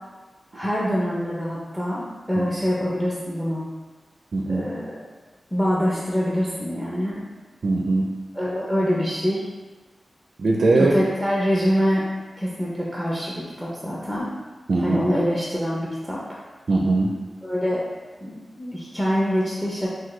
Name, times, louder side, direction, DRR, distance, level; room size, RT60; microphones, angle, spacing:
voice 1, 0.5-3.6 4.5-5.0 5.5-7.2 8.3-9.5 10.8-12.0 12.4-14.3 14.8-16.2 17.4-17.8 18.2-19.9, equal, 5° left, -5 dB, 0.6 m, -25 dB
voice 2, 4.3-4.7 5.8-5.9 7.6-8.1 10.4-11.0 14.7-15.1 16.7-17.1, right 3 dB, 60° right, 0 dB, 0.4 m, -20 dB
6.1 x 2.3 x 3.1 m, 1.3 s
wide cardioid pair, 135°, 0 cm